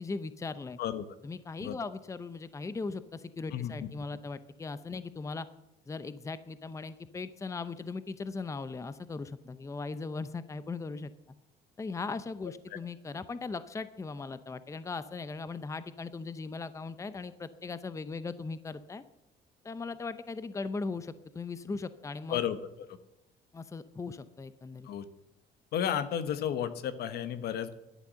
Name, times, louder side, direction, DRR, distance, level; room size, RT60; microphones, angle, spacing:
voice 1, 0.0-0.8 1.2-5.5 5.9-11.1 11.8-19.0 19.6-22.4 23.5-24.9, left 4 dB, 20° left, 13 dB, 0.7 m, -38 dB
voice 2, 3.5-3.9 22.3-22.6 24.8-25.1 25.7-27.8, left 9 dB, 70° left, 12 dB, 1.2 m, -32 dB
11.0 x 10.5 x 7.6 m, 0.90 s
cardioid pair, 110°, 17 cm